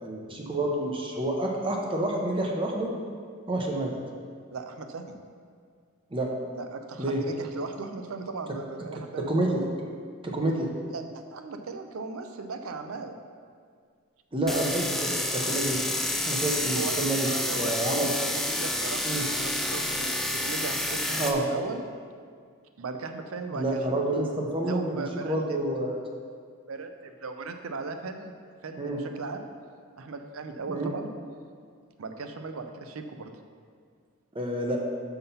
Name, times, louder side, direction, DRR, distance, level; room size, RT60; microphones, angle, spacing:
voice 1, 0.0-2.9 3.5-4.0 6.1-6.3 7.0-7.2 9.2-9.6 10.2-10.7 14.3-15.8 16.2-18.1 19.1-19.2 21.2-21.4 23.5-26.0 28.8-29.0 30.7-30.9 34.3-34.8, right 1 dB, 25° right, 0 dB, 0.7 m, -28 dB
voice 2, 4.5-5.2 6.5-9.3 10.8-11.0 11.3-13.2 16.8-16.9 17.3-21.8 22.8-23.8 24.6-25.6 26.7-28.3 28.6-29.5 30.0-31.1 32.0-33.3, right 4 dB, 80° right, 6 dB, 0.6 m, -37 dB
sound 1, 14.5-21.3, left 1 dB, ahead, 0.4 m, -29 dB
5.8 x 5.6 x 5.5 m, 2.1 s
head